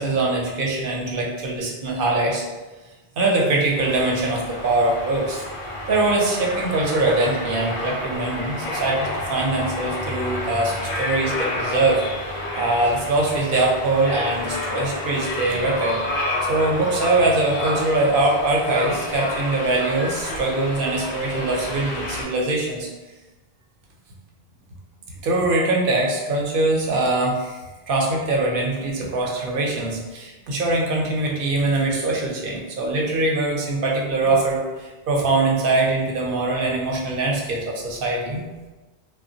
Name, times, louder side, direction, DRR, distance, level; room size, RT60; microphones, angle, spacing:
voice 1, 0.0-2.4 3.2-5.4 5.9-12.0 12.5-16.0 16.5-22.9 25.2-38.4, right 2 dB, 65° right, -1 dB, 0.7 m, -22 dB
sound 1, 3.7-22.2, left 1 dB, 60° left, 0.8 m, -30 dB
2.8 x 2.1 x 2.6 m, 1.2 s
omnidirectional pair, 1.0 m